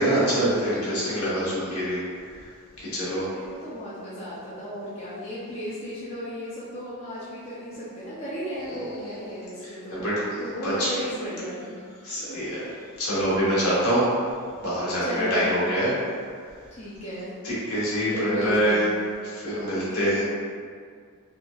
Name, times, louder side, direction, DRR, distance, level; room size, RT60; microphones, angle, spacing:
voice 1, 0.0-2.0 2.4-2.5 2.8-3.3 8.9-9.1 10.0-10.1 10.6-10.9 12.0-12.6 13.0-14.1 14.6-15.9 17.4-18.8 19.3-20.2, equal, 75° left, -9 dB, 1.0 m, -25 dB
voice 2, 3.1-10.0 10.4-11.8 12.2-12.5 15.0-15.9 16.7-17.3 18.1-18.9 19.5-20.2, equal, 30° left, -9 dB, 0.4 m, -35 dB
2.7 x 2.3 x 2.3 m, 2.1 s
head